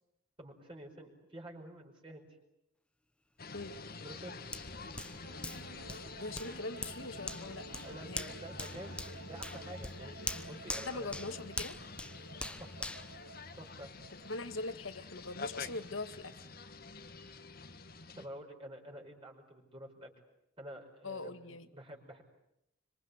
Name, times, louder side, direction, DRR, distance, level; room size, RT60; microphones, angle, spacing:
voice 1, 0.4-2.3 4.0-4.4 7.8-10.2 10.5-11.2 12.6-12.8 13.6-13.9 18.1-20.1 20.6-22.2, equal, 25° right, 0 dB, 5.2 m, -49 dB
sound 1, 3.4-18.3, left 3 dB, 50° left, 2.1 m, -48 dB
Hands, 4.5-14.0 14.5-14.6, left 2 dB, 5° left, 1.0 m, -44 dB
sound 2, 5.2-14.6, right 2 dB, 85° right, 2.4 m, -53 dB
voice 2, 6.1-7.7 8.0-8.2 10.8-11.8 14.3-16.5 21.0-21.7, left 3 dB, 75° left, 10 dB, 2.0 m, -41 dB
26.5 x 26.0 x 8.2 m, 0.81 s
head